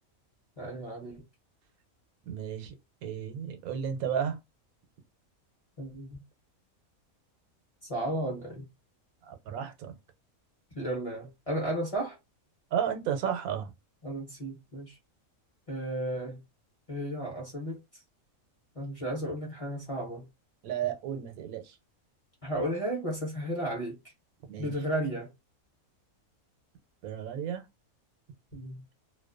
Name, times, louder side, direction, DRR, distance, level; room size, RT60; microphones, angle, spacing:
voice 1, 0.6-1.2 5.8-6.2 7.9-8.6 10.8-12.2 14.0-15.0 15.7-16.4 16.9-17.8 18.7-20.3 22.4-24.0 24.6-25.3 28.5-28.8, right 1 dB, 35° left, 0.6 m, -34 dB
voice 2, 2.2-2.7 3.0-4.4 9.2-9.9 12.7-13.7 20.6-21.8 24.5-24.7 27.0-27.6, right 8 dB, 90° right, 1.0 m, -33 dB
2.5 x 2.2 x 2.3 m
omnidirectional pair, 1.5 m